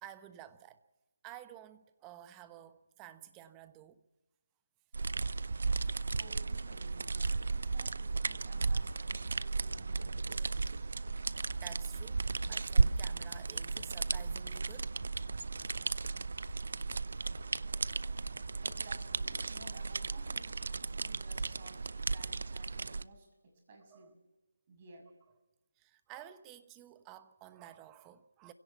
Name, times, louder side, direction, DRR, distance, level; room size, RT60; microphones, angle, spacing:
voice 1, 0.0-0.8 1.2-4.0 10.4-10.6 11.0-14.9 15.7-16.0 16.6-16.8 17.3-18.5 23.9-24.1 25.8-28.5, right 12 dB, 15° right, 1.2 m, -53 dB
sound 1, 4.9-23.0, right 4 dB, 60° right, 0.6 m, -35 dB
voice 2, 6.2-10.9 17.2-17.6 18.6-24.2 24.7-25.1, right 2 dB, 35° right, 6.4 m, -56 dB
sound 2, 9.7-19.8, left 3 dB, 70° left, 0.6 m, -52 dB
29.0 x 17.0 x 5.9 m
figure-of-eight pair, 155°, 0 cm